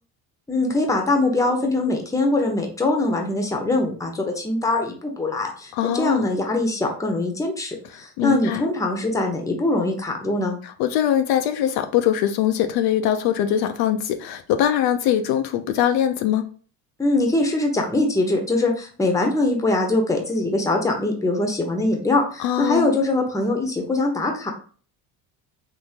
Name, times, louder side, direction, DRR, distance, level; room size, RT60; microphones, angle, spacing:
voice 1, 0.5-10.6 17.0-24.5, left 2 dB, 10° left, 0.8 m, -22 dB
voice 2, 5.7-6.3 7.9-8.6 10.6-16.5 22.4-23.0, left 10 dB, 65° left, 0.5 m, -22 dB
3.6 x 2.6 x 2.7 m
supercardioid pair, 105°, 40 cm